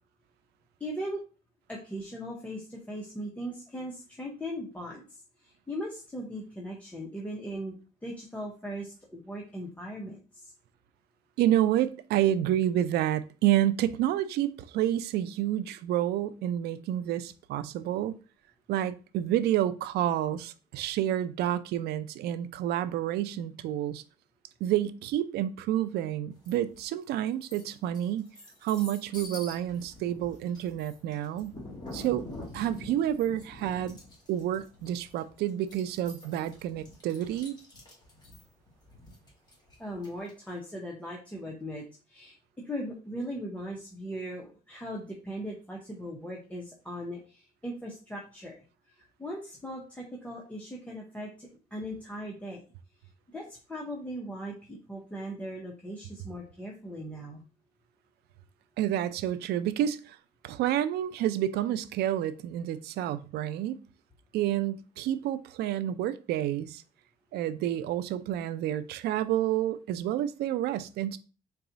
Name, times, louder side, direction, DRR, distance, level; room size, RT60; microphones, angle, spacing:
voice 1, 0.8-1.2 1.7-7.8 8.0-10.5 39.8-42.4 42.6-48.5 48.9-52.6 53.3-57.4, equal, 10° left, 0.7 m, -39 dB
voice 2, 11.4-18.2 18.7-24.0 24.6-28.3 28.6-31.6 31.9-32.2 32.5-34.0 34.3-37.6 58.8-60.2 60.4-63.8 64.3-66.8 67.3-71.2, right 12 dB, 75° right, 0.4 m, -29 dB
sound 1, 26.4-26.9 27.3-40.5, left 1 dB, 25° left, 1.6 m, -46 dB
4.0 x 2.3 x 3.9 m
cardioid pair, 110°, 17 cm